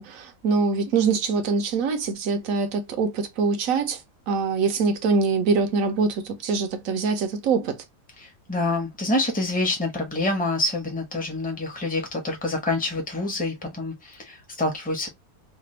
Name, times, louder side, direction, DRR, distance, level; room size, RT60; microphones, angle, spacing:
voice 1, 0.0-4.0 4.3-7.8, right 4 dB, 65° right, 0.9 m, -24 dB
voice 2, 8.2-15.1, left 2 dB, 5° left, 0.7 m, -27 dB
3.3 x 2.2 x 3.1 m
omnidirectional pair, 1.8 m